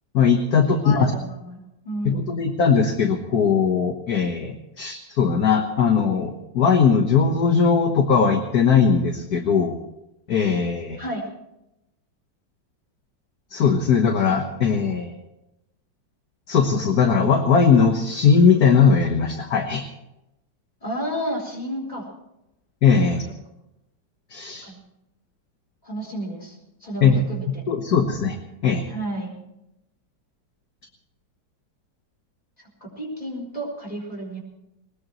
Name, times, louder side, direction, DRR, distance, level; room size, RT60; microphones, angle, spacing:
voice 1, 0.1-1.1 2.1-9.8 10.3-11.0 13.5-15.2 16.5-19.8 22.8-23.2 24.3-24.7 27.0-28.4 28.6-28.8, left 6 dB, 55° left, 4 dB, 1.7 m, -19 dB
voice 2, 0.7-2.2 11.0-11.3 20.8-22.1 24.6-24.8 25.8-27.6 28.9-29.3 32.6-34.4, equal, 20° left, -1 dB, 4.7 m, -32 dB
20.5 x 20.0 x 3.1 m, 0.87 s
omnidirectional pair, 2.1 m